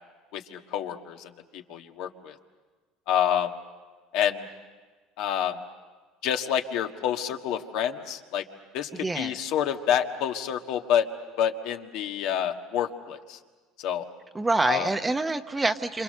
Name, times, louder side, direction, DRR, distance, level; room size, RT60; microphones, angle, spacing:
voice 1, 0.3-2.3 3.1-3.5 4.1-4.4 5.2-5.6 6.2-8.4 8.7-11.1 11.4-13.4 13.8-14.0 14.7-14.9, left 9 dB, 70° left, 4 dB, 1.6 m, -28 dB
voice 2, 8.9-9.4 14.3-16.0, right 2 dB, 10° right, 8 dB, 0.9 m, -26 dB
28.0 x 27.0 x 6.7 m, 1.4 s
cardioid pair, 135°, 0 cm